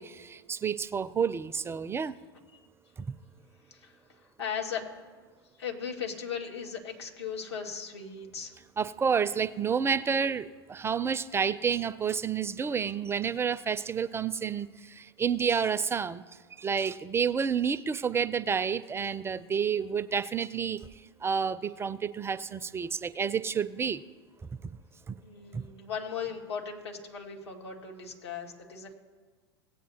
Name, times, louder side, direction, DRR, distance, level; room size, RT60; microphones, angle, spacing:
voice 1, 0.0-2.2 3.0-3.1 8.8-16.2 16.6-20.8 21.2-24.0 24.6-24.7 25.1-25.2 25.5-25.6, right 6 dB, 20° right, 14 dB, 0.4 m, -30 dB
voice 2, 3.7-4.8 5.6-8.6 25.2-28.9, left 7 dB, 85° left, 0 dB, 2.0 m, -37 dB
18.0 x 8.5 x 2.8 m, 1.5 s
hypercardioid pair, 95°, 14 cm